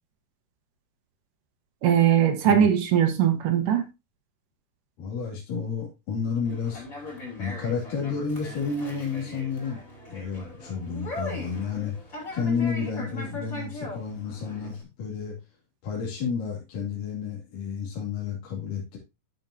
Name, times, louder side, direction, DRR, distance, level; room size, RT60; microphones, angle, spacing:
voice 1, 1.8-3.9, right 9 dB, 70° right, 2.9 m, -20 dB
voice 2, 5.0-6.8 7.4-9.8 10.1-12.0 12.3-15.3 15.8-19.0, left 5 dB, 75° left, 4.4 m, -31 dB
Conversation, 6.4-14.8, left 2 dB, 25° left, 3.3 m, -40 dB
13.0 x 6.3 x 2.7 m
omnidirectional pair, 3.9 m